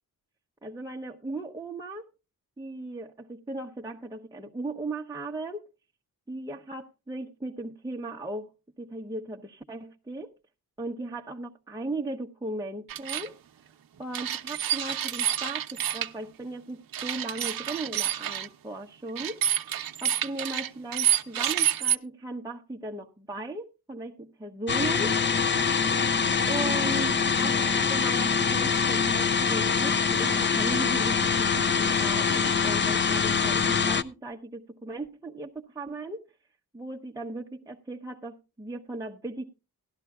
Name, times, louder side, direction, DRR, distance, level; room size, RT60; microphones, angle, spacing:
voice 1, 0.6-2.1 2.6-5.7 6.3-10.3 10.8-13.4 14.0-19.7 20.0-25.2 26.5-36.3 36.7-39.5, right 2 dB, 10° right, 0.8 m, -37 dB
sound 1, 12.9-13.3 14.1-16.1 16.9-18.5 19.2-22.0, right 10 dB, 60° right, 0.8 m, -28 dB
sound 2, 24.7-34.0, left 6 dB, 30° left, 0.5 m, -24 dB
17.5 x 12.0 x 2.3 m
wide cardioid pair, 115°, 39 cm